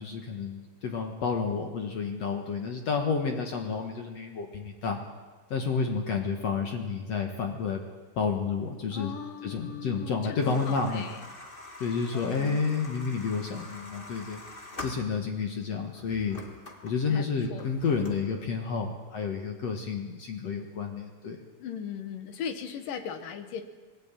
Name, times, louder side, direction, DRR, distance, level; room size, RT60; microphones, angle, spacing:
voice 1, 0.0-5.0 5.5-7.8 8.2-9.1 9.4-11.0 11.8-14.4 14.8-16.4 16.8-21.4, left 5 dB, 55° left, 3 dB, 2.2 m, -30 dB
voice 2, 8.9-11.3 11.8-12.6 17.1-17.7 21.6-23.6, left 7 dB, 70° left, 8 dB, 3.0 m, -39 dB
sound 1, 10.4-15.5 15.9-18.5, left 2 dB, 25° left, 1.2 m, -45 dB
21.0 x 14.0 x 8.9 m, 1.3 s
omnidirectional pair, 4.1 m